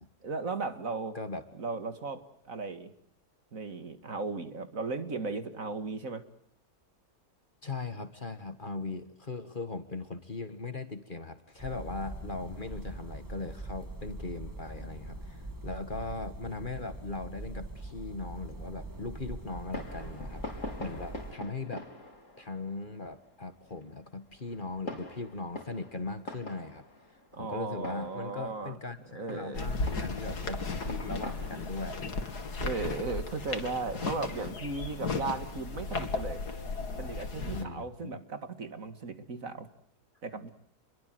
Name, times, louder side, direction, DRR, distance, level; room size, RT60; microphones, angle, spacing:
voice 1, 0.2-1.2 1.6-2.9 3.5-6.2 27.3-28.8 29.1-29.7 32.6-36.4 37.0-39.7 40.2-40.5, right 3 dB, 60° right, 10 dB, 2.4 m, -36 dB
voice 2, 7.6-20.4 20.8-21.9 22.4-26.8 27.3-32.4 37.5-38.2, left 3 dB, 35° left, 11 dB, 1.8 m, -39 dB
sound 1, 11.6-21.3, right 2 dB, 10° right, 2.8 m, -43 dB
Fireworks, 19.5-33.7, left 2 dB, 50° left, 4.9 m, -46 dB
sound 2, 29.5-37.7, left 3 dB, 85° left, 3.0 m, -35 dB
29.0 x 23.0 x 7.7 m, 0.71 s
omnidirectional pair, 1.7 m